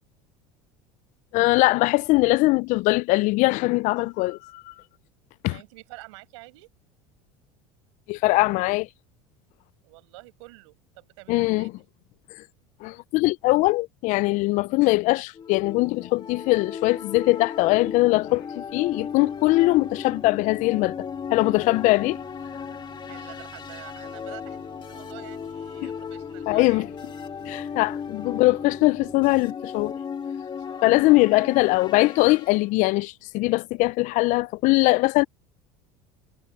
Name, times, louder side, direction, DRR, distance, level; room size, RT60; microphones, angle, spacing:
voice 1, 1.3-4.7 5.4-5.6 8.1-8.9 11.3-11.7 12.8-20.9 21.3-22.2 25.8-25.9 26.5-26.9 27.5-29.9 30.8-35.2, left 22 dB, 55° left, 0.4 m, -21 dB
voice 2, 5.5-6.7 9.8-11.8 23.1-24.6 24.9-26.9 27.7-27.9 30.6-31.1, right 23 dB, 85° right, 5.9 m, -47 dB
sound 1, 15.3-32.6, left 7 dB, 30° left, 2.4 m, -36 dB
sound 2, 17.6-29.4, right 6 dB, 25° right, 3.0 m, -51 dB
supercardioid pair, 110°, 15 cm